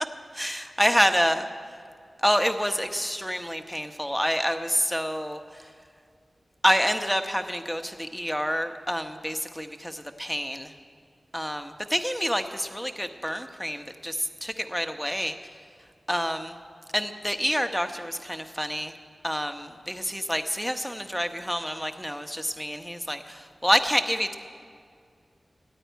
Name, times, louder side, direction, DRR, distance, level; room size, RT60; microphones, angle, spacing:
voice 1, 0.3-1.4 2.2-5.4 6.6-10.7 11.3-15.3 16.1-16.5 16.9-18.9 19.2-24.3, equal, 5° left, 8 dB, 1.0 m, -27 dB
14.0 x 9.3 x 9.2 m, 2.1 s
cardioid pair, 55°, 0 cm